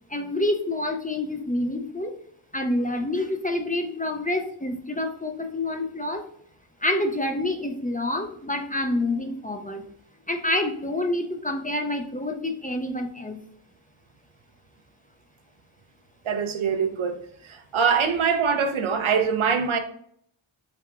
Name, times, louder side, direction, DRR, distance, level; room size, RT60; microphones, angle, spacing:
voice 1, 0.1-2.1 2.5-6.2 6.8-9.8 10.3-13.4, left 1 dB, 20° left, 0.4 m, -27 dB
voice 2, 16.2-19.8, right 6 dB, 80° right, 0.7 m, -24 dB
4.6 x 3.5 x 2.4 m
wide cardioid pair, 55°, 47 cm